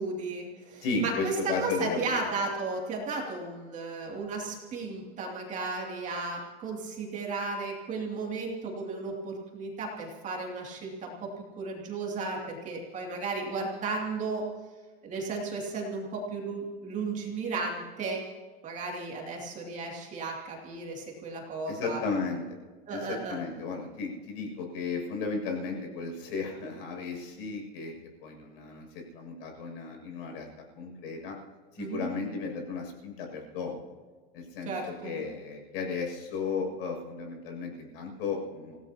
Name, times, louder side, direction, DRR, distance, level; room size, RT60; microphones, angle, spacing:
voice 1, 0.0-11.3 11.6-14.5 15.0-18.3 18.6-22.0 22.9-23.4 31.8-32.1 34.6-35.1, right 3 dB, 25° right, -1 dB, 2.7 m, -34 dB
voice 2, 0.8-2.2 21.7-22.4 22.9-30.5 30.8-31.4 31.7-33.9 34.3-38.8, left 4 dB, 60° left, 2 dB, 7.0 m, -34 dB
27.5 x 17.5 x 2.9 m, 1.4 s
supercardioid pair, 160°, 32 cm